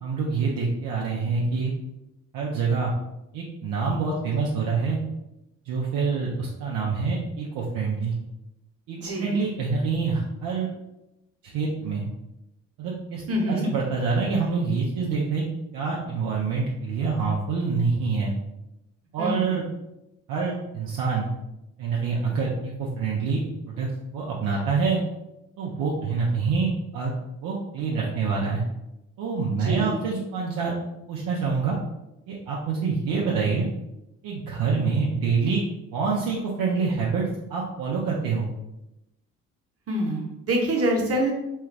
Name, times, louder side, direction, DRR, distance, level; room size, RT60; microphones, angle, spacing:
voice 1, 0.0-1.7 2.3-2.9 3.3-5.0 5.7-8.1 8.9-10.7 11.4-12.0 12.8-15.4 15.7-18.3 19.1-19.6 20.3-21.3 21.8-25.0 25.6-26.7 26.9-27.1 27.4-28.6 29.2-30.7 31.1-31.8 32.3-33.7 34.2-35.6 35.9-38.5, right 4 dB, 60° right, -3 dB, 0.7 m, -26 dB
voice 2, 8.9-9.4 13.3-13.7 19.2-19.7 29.5-30.0 39.9-41.3, right 1 dB, 40° right, 0 dB, 1.1 m, -26 dB
3.1 x 2.3 x 3.3 m, 0.92 s
hypercardioid pair, 50°, 37 cm